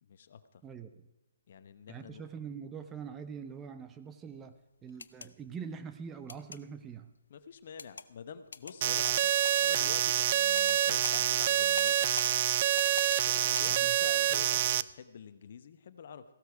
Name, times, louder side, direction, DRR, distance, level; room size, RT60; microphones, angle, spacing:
voice 1, 0.0-0.6 1.5-2.2 7.3-9.3 9.6-12.5 13.2-16.2, left 7 dB, 50° left, 11 dB, 0.9 m, -47 dB
voice 2, 0.6-1.1 1.9-7.1 13.7-14.0, right 6 dB, 15° right, 9 dB, 0.7 m, -44 dB
sound 1, 4.9-5.3 6.3-6.6 7.8-8.1 8.5-8.7 9.0-9.6 10.6-10.8 11.0-11.2 11.8-12.3 12.8-13.2 13.5-13.7, left 4 dB, 75° left, 0.5 m, -41 dB
sound 2, 8.8-14.8, right 12 dB, 40° right, 0.3 m, -27 dB
15.5 x 12.5 x 4.8 m, 1.0 s
figure-of-eight pair, 135°, 0 cm